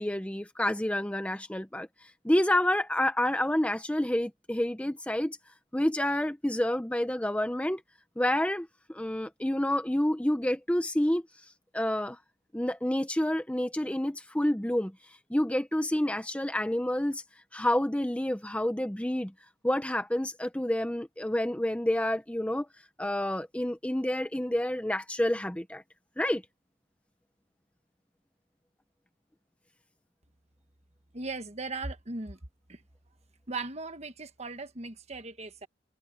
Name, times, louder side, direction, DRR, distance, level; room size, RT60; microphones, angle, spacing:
voice 1, 0.0-1.9 2.2-5.4 5.7-7.8 8.2-11.2 11.7-12.2 12.5-14.9 15.3-17.2 17.5-19.3 19.6-22.7 23.0-25.8 26.2-26.4, left 1 dB, 5° left, 0.7 m, -28 dB
voice 2, 31.1-32.4 32.7-32.8 33.5-35.7, right 3 dB, 35° right, 1.3 m, -38 dB
head